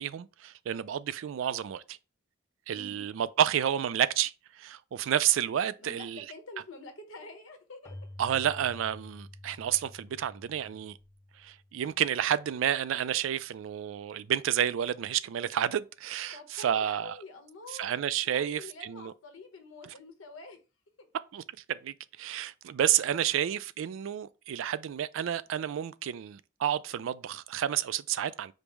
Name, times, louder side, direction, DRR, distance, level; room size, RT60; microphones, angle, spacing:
voice 1, 0.0-2.0 2.7-6.2 8.2-11.0 11.4-17.1 17.7-19.1 21.3-21.4 21.7-28.5, right 10 dB, 75° right, 0.3 m, -30 dB
voice 2, 2.7-3.0 5.8-8.0 16.3-17.9 18.2-20.6, left 3 dB, 90° left, 1.0 m, -47 dB
Keyboard (musical), 7.8-12.3, left 1 dB, 15° left, 0.5 m, -49 dB
5.2 x 2.1 x 4.5 m
head